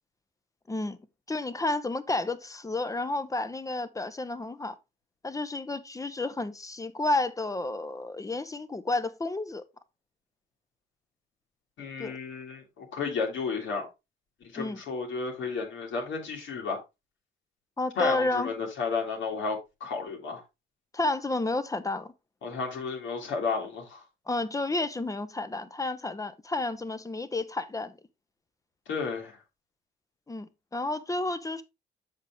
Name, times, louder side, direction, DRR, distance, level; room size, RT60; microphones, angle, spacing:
voice 1, 0.7-1.0 1.3-4.7 5.2-9.6 12.0-12.2 14.6-14.8 17.8-18.5 20.9-22.1 24.3-28.0 30.3-31.6, left 2 dB, 15° left, 0.8 m, -31 dB
voice 2, 11.8-13.9 14.5-16.8 18.0-20.4 22.4-24.0 28.9-29.4, left 5 dB, 75° left, 2.4 m, -32 dB
7.4 x 5.5 x 3.4 m
cardioid pair, 90°, 20 cm